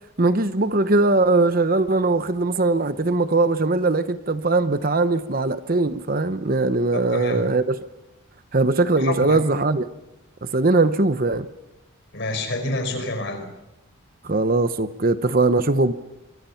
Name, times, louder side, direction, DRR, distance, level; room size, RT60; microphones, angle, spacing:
voice 1, 0.2-7.8 8.5-9.9 10.4-11.5 14.2-15.9, right 2 dB, 40° right, 0.9 m, -20 dB
voice 2, 6.9-7.5 9.0-9.4 12.1-13.5, left 2 dB, 55° left, 4.8 m, -28 dB
25.5 x 25.0 x 5.8 m
head